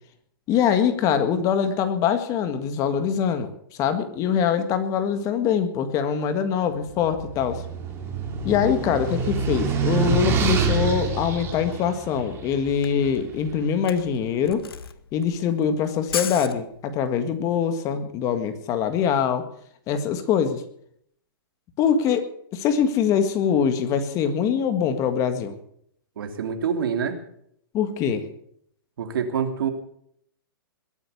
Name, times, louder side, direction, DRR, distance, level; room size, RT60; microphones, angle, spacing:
voice 1, 0.5-3.5 3.8-7.6 8.4-14.7 15.1-19.4 19.9-20.6 21.8-25.5 27.7-28.2, left 7 dB, 25° left, 9 dB, 1.7 m, -23 dB
sound 1, 7.0-13.2, right 5 dB, 20° right, 2.9 m, -26 dB
Camera, 12.4-12.5 12.7-17.2, left 7 dB, 85° left, 1.3 m, -35 dB
voice 2, 26.2-27.2 29.0-29.7, right 7 dB, 70° right, 6 dB, 3.0 m, -26 dB
21.5 x 8.3 x 7.0 m, 0.68 s
hypercardioid pair, 150°, 12 cm